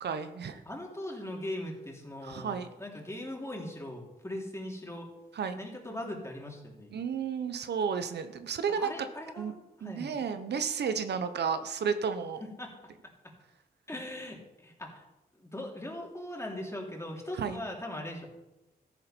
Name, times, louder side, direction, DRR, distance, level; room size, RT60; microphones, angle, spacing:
voice 1, 0.0-0.6 2.2-2.7 5.4-5.6 6.9-8.9 9.4-9.5 9.8-12.4 17.4-17.6, right 6 dB, 80° right, 10 dB, 0.9 m, -32 dB
voice 2, 0.6-5.1 5.6-6.9 8.7-10.2 12.4-12.9 13.2-13.3 13.9-15.1 15.4-18.3, left 1 dB, 15° left, 0 dB, 3.3 m, -40 dB
14.0 x 10.5 x 4.5 m, 0.97 s
cardioid pair, 75°, 17 cm